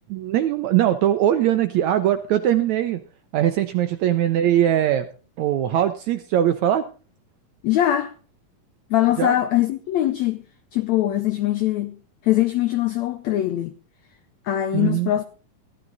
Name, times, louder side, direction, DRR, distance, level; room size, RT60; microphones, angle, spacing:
voice 1, 0.1-3.0 3.3-5.1 5.4-6.8 9.2-9.3 14.7-15.1, right 11 dB, 80° right, 1.6 m, -21 dB
voice 2, 7.6-8.1 8.9-10.4 10.7-12.0 12.2-13.7 14.4-15.2, left 13 dB, 90° left, 1.5 m, -22 dB
14.0 x 12.0 x 4.0 m
omnidirectional pair, 4.1 m